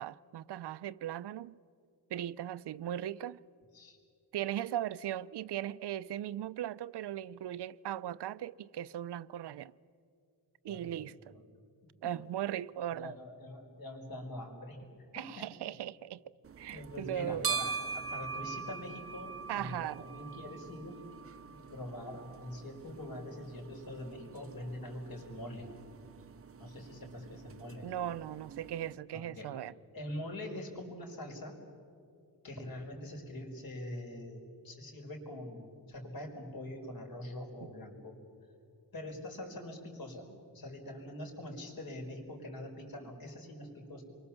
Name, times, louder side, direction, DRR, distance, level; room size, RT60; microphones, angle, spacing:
voice 1, 0.0-1.6 2.1-3.4 4.3-9.7 10.6-11.3 12.0-13.1 15.1-16.2 16.6-17.5 19.5-20.0 27.8-29.7 37.6-37.7, right 11 dB, 80° right, 0.6 m, -38 dB
voice 2, 10.6-11.4 12.0-12.1 12.9-15.5 16.7-21.0 21.5-25.7 26.6-27.9 29.1-29.5 29.9-31.6 32.4-38.2 38.9-40.2 40.5-44.0, left 1 dB, 60° left, 4.9 m, -44 dB
sound 1, 16.4-29.0, right 5 dB, 35° right, 0.7 m, -43 dB
28.5 x 24.0 x 7.1 m
wide cardioid pair, 165°, 40 cm